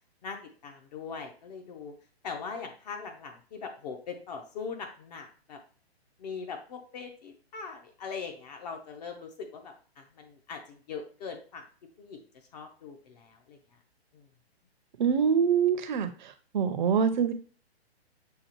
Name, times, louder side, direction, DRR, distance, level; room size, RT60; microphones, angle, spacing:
voice 1, 0.6-1.9 2.2-5.6 6.2-11.6 12.0-12.2 12.5-13.6 14.1-14.3, left 5 dB, 40° left, 4 dB, 0.9 m, -41 dB
voice 2, 15.0-16.1 16.5-17.3, right 7 dB, 45° right, 9 dB, 0.7 m, -24 dB
6.7 x 2.5 x 3.0 m, 0.40 s
hypercardioid pair, 140°, 32 cm